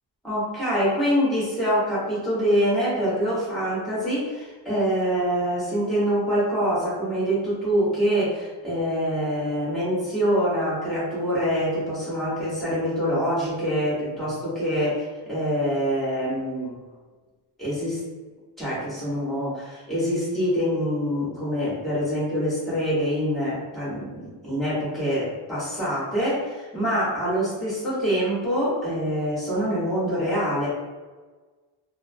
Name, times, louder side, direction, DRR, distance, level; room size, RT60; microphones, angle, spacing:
voice 1, 0.2-16.7 17.6-18.0 18.6-30.7, equal, ahead, -9 dB, 1.5 m, -25 dB
3.6 x 2.0 x 2.2 m, 1.3 s
wide cardioid pair, 95°, 48 cm